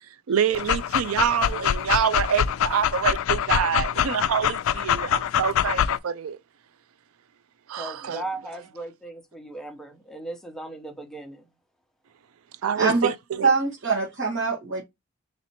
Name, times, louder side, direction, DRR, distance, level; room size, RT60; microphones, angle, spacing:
voice 1, 0.3-6.4 7.7-8.2 12.6-13.5, right 8 dB, 80° right, 0.4 m, -26 dB
Dog, 0.5-6.0, left 9 dB, 65° left, 0.3 m, -24 dB
voice 2, 7.8-11.4, right 2 dB, ahead, 0.8 m, -37 dB
voice 3, 12.7-13.1 13.4-14.8, right 4 dB, 60° right, 1.6 m, -23 dB
4.2 x 3.2 x 2.8 m
head